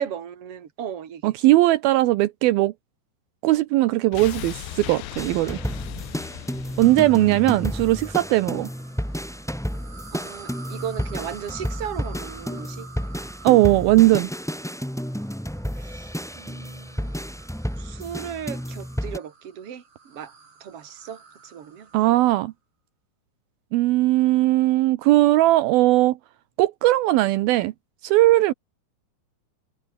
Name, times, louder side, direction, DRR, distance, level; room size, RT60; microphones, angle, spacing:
voice 1, 0.0-1.3 10.1-12.9 16.4-17.1 17.8-20.3 20.6-21.9, right 8 dB, 40° right, 2.6 m, -35 dB
voice 2, 1.2-2.7 3.4-5.6 6.8-8.7 13.4-14.3 21.9-22.5 23.7-26.2 26.6-27.7 28.0-28.5, right 17 dB, 80° right, 2.2 m, -19 dB
sound 1, 4.1-9.1 9.4-9.5, left 13 dB, 75° left, 3.7 m, -39 dB
sound 2, 5.2-19.2, equal, ahead, 1.9 m, -31 dB
sound 3, 6.8-22.4, right 4 dB, 65° right, 9.4 m, -49 dB
omnidirectional pair, 5.2 m